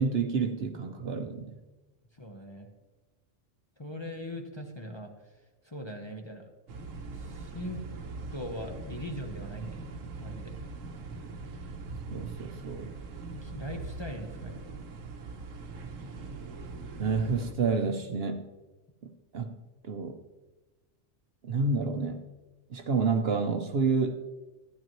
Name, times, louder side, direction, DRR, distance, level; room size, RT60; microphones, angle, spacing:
voice 1, 0.0-1.6 12.1-13.0 17.0-18.5 19.0-19.5 19.8-20.2 21.4-22.3 22.7-24.2, right 4 dB, 60° right, 6 dB, 0.9 m, -29 dB
voice 2, 2.1-2.7 3.8-5.3 5.6-6.5 7.1-7.8 8.3-10.6 13.3-14.7, left 1 dB, 25° left, 1 dB, 0.8 m, -41 dB
sound 1, 6.7-17.5, right 4 dB, 85° right, 1.2 m, -41 dB
13.5 x 10.5 x 3.0 m, 1.1 s
omnidirectional pair, 1.3 m